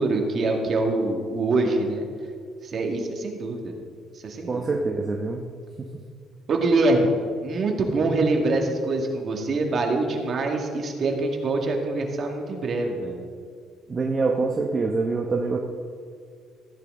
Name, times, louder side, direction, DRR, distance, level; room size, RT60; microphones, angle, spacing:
voice 1, 0.0-2.0 2.6-3.8 4.2-4.7 6.5-7.1 7.4-13.2, right 2 dB, 45° right, 2 dB, 1.9 m, -24 dB
voice 2, 4.5-5.4 5.8-5.9 13.9-15.6, right 3 dB, 30° right, 1 dB, 0.9 m, -25 dB
15.0 x 9.9 x 3.8 m, 2.2 s
cardioid pair, 130°, 0 cm